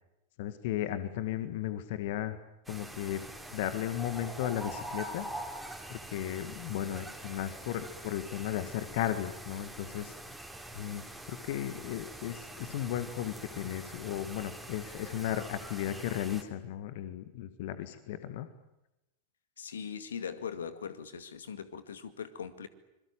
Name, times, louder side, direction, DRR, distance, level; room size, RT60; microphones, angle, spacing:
voice 1, 0.4-2.4 2.7-3.2 3.5-5.3 5.9-10.2 10.7-18.5, left 11 dB, 50° left, 10 dB, 1.8 m, -35 dB
sound 1, 2.7-16.4, right 1 dB, 5° right, 3.7 m, -44 dB
voice 2, 19.6-22.7, left 7 dB, 65° left, 12 dB, 2.1 m, -40 dB
26.0 x 22.5 x 9.0 m, 0.91 s
figure-of-eight pair, 90°, 0 cm